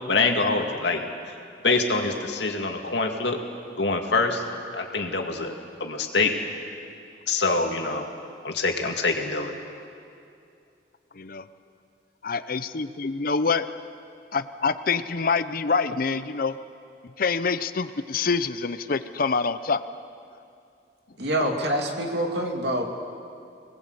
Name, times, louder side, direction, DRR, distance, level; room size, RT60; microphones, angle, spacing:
voice 1, 0.1-1.1 1.6-3.4 3.8-4.4 4.7-5.5 5.8-6.4 7.3-8.1 8.4-9.5, left 3 dB, 75° left, 3 dB, 2.3 m, -25 dB
voice 2, 12.2-13.7 14.3-16.6 17.2-19.8, left 4 dB, 55° left, 13 dB, 0.7 m, -26 dB
voice 3, 21.2-22.8, right 1 dB, 70° right, 2 dB, 2.7 m, -26 dB
25.0 x 19.5 x 8.1 m, 2.5 s
head